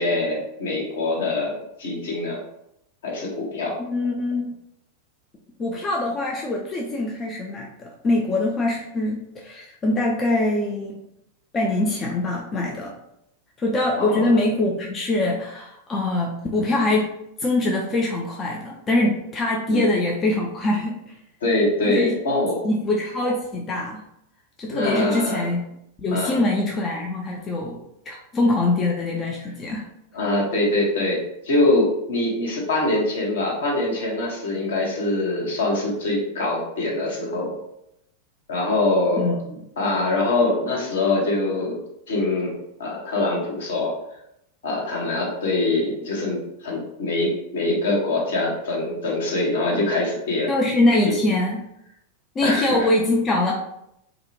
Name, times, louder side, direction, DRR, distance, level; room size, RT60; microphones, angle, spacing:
voice 1, 0.0-2.4 3.0-3.8 14.0-14.3 19.7-19.9 21.4-22.7 24.6-25.4 26.1-26.4 29.4-29.5 30.1-37.5 38.5-39.3 39.8-41.8 42.1-43.9 44.6-50.5 51.1-51.2 52.4-52.9, left 2 dB, 60° left, -3 dB, 0.8 m, -24 dB
voice 2, 3.8-4.5 5.6-11.0 11.5-12.9 13.6-17.1 17.4-21.1 21.9-22.1 22.6-24.0 24.6-25.6 26.0-27.8 28.1-29.9 39.2-39.6 50.5-51.7 52.4-53.5, left 2 dB, 25° left, -1 dB, 0.3 m, -23 dB
2.5 x 2.1 x 2.6 m, 0.80 s
figure-of-eight pair, 90°, 0 cm